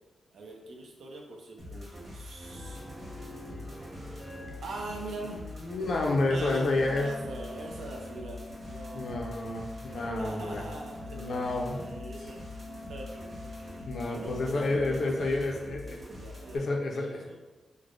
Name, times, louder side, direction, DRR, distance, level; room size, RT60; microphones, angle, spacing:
voice 1, 0.3-2.8 4.6-5.7 6.3-8.4 8.7-9.6 9.8-12.6 12.9-17.4, right 2 dB, 85° right, 1 dB, 0.6 m, -43 dB
sound 1, 1.6-16.6, left 1 dB, 40° right, 1.2 m, -45 dB
sound 2, 2.5-6.6, equal, 5° right, 0.5 m, -47 dB
voice 2, 5.6-7.1 8.9-10.6 11.1-11.9 13.9-16.0 16.5-17.4, left 2 dB, 55° left, 1 dB, 0.4 m, -30 dB
Wind instrument woodwind instrument, 6.7-15.2, left 2 dB, 80° left, 0.9 m, -45 dB
3.2 x 2.1 x 3.7 m, 1.2 s
wide cardioid pair, 165°, 0 cm